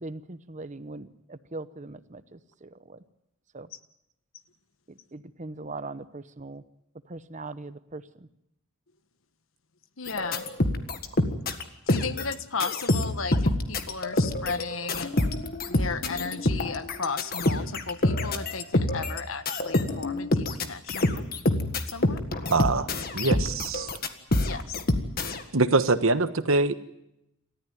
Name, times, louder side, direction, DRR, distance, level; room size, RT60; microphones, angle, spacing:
voice 1, 0.0-3.0 3.5-3.7 4.9-6.6 7.1-8.3, right 2 dB, 35° right, 14 dB, 0.9 m, -40 dB
voice 2, 10.0-10.4 11.9-15.1 15.7-21.2 21.9-22.2 24.4-24.8, left 4 dB, 70° left, 11 dB, 1.3 m, -35 dB
sound 1, 10.1-11.6 11.9-12.3 12.6-25.4, left 1 dB, 45° left, 1.7 m, -26 dB
voice 3, 22.5-22.9 23.1-23.9 25.5-26.8, right 3 dB, 75° right, 11 dB, 1.2 m, -23 dB
28.0 x 14.0 x 9.2 m, 0.87 s
head